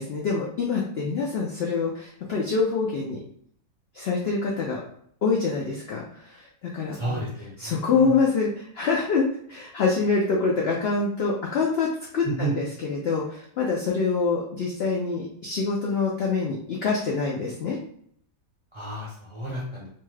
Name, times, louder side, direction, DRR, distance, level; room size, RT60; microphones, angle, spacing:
voice 1, 0.0-3.2 3.9-4.8 5.2-7.2 7.6-17.8, left 4 dB, 70° left, -2 dB, 0.6 m, -26 dB
voice 2, 6.9-8.1 12.2-12.5 18.7-19.9, right 2 dB, 30° right, -6 dB, 0.5 m, -32 dB
2.6 x 2.3 x 3.2 m, 0.65 s
omnidirectional pair, 1.5 m